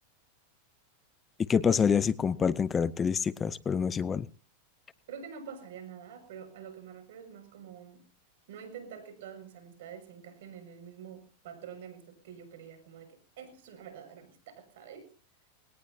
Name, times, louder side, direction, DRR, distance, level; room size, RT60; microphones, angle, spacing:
voice 1, 1.5-4.3, left 6 dB, 20° left, 0.7 m, -26 dB
voice 2, 5.1-8.1 8.5-15.1, right 7 dB, 70° right, 6.3 m, -47 dB
20.5 x 18.0 x 2.8 m
hypercardioid pair, 115°, 0 cm